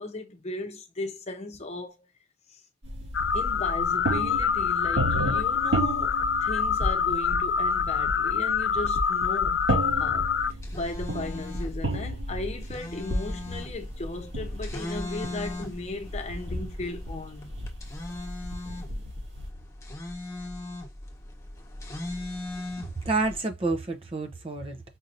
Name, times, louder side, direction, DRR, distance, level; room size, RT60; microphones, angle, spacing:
voice 1, 0.0-2.0 3.2-6.1 6.4-9.7 9.9-10.3 10.7-17.5, left 2 dB, 35° left, 0.8 m, -36 dB
sound 1, 2.8-19.5, right 1 dB, 80° right, 2.2 m, -33 dB
sound 2, 3.1-10.5, left 7 dB, 70° left, 0.3 m, -26 dB
sound 3, 10.4-23.4, left 2 dB, 15° left, 1.3 m, -39 dB
voice 2, 22.8-24.8, right 3 dB, 30° right, 0.7 m, -29 dB
5.3 x 2.9 x 2.6 m
head